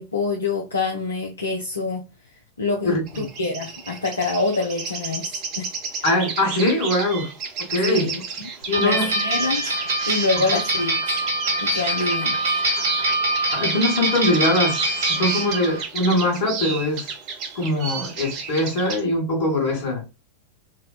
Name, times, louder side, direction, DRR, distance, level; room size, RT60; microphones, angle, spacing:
voice 1, 0.0-2.1 2.6-5.7 7.8-8.5 8.8-9.7 10.1-11.0 11.6-12.4, left 3 dB, 75° left, 0.6 m, -26 dB
voice 2, 2.8-3.3 6.0-7.3 7.7-8.1 8.7-9.1 10.5-10.6 13.5-17.1 17.5-20.0, left 1 dB, 55° left, 1.5 m, -22 dB
sound 1, 3.1-19.0, right 5 dB, 40° right, 0.8 m, -32 dB
sound 2, 8.7-15.8, right 1 dB, 65° right, 1.2 m, -24 dB
4.0 x 2.3 x 2.3 m
figure-of-eight pair, 90°, 0 cm